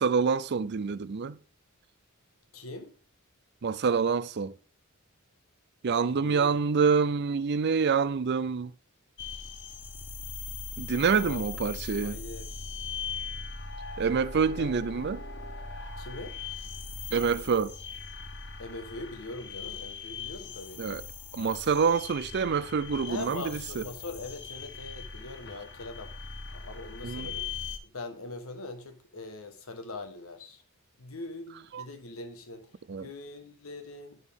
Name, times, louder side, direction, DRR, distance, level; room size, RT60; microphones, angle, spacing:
voice 1, 0.0-1.4 3.6-4.5 5.8-8.7 10.8-12.2 14.0-15.2 17.1-17.7 20.8-21.0 21.3-23.8 27.0-27.3 31.7-31.8 32.9-33.1, right 5 dB, 50° right, 0.5 m, -27 dB
voice 2, 2.5-2.9 6.0-6.6 11.1-11.6 12.0-12.7 14.5-14.8 16.0-16.4 18.6-21.0 23.1-27.5 27.8-30.6 31.0-34.2, left 2 dB, 70° left, 1.4 m, -42 dB
sound 1, 9.2-27.8, left 5 dB, 55° left, 1.4 m, -40 dB
11.0 x 6.2 x 3.6 m
head